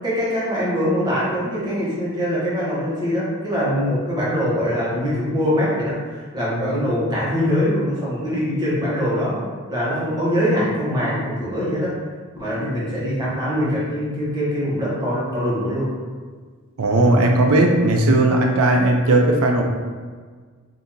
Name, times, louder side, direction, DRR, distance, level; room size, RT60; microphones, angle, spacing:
voice 1, 0.0-9.4 9.7-12.0 12.3-15.9, equal, 20° right, -8 dB, 1.0 m, -23 dB
voice 2, 16.8-19.6, right 2 dB, 85° right, 2 dB, 0.5 m, -16 dB
2.8 x 2.6 x 3.7 m, 1.5 s
head